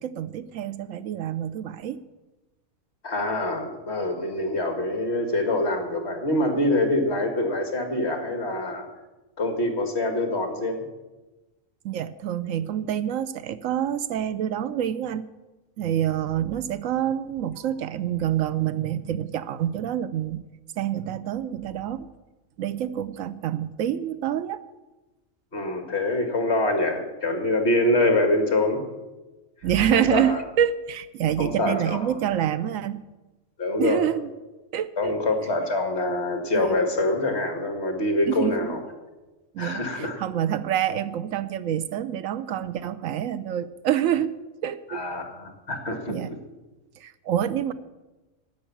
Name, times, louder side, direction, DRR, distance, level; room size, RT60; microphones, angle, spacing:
voice 1, 0.0-2.0 11.8-15.3 15.8-20.4 20.8-22.1 22.6-24.6 29.6-33.0 33.8-34.3 34.7-35.2 36.5-36.7 38.3-38.8 39.5-44.3 44.6-45.1 46.1-46.3 47.0-47.7, right 10 dB, 75° right, 14 dB, 1.0 m, -27 dB
voice 2, 3.0-8.9 9.4-10.8 25.5-28.8 29.9-30.4 31.4-32.0 33.6-34.0 35.0-38.8 39.6-40.2 44.9-46.4, left 2 dB, 50° left, 4 dB, 2.2 m, -25 dB
12.0 x 9.2 x 7.2 m, 1.1 s
omnidirectional pair, 1.4 m